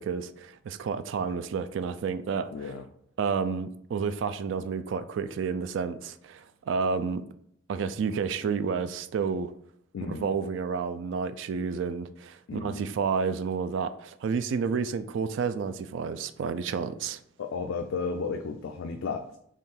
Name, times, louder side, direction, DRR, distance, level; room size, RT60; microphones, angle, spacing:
voice 1, 0.0-2.7 3.2-7.2 7.7-9.5 10.0-17.2, right 5 dB, 65° right, 0.3 m, -30 dB
voice 2, 2.5-2.9 9.9-10.3 12.5-12.9 17.4-19.4, left 4 dB, 75° left, 0.4 m, -33 dB
3.7 x 3.1 x 4.2 m
head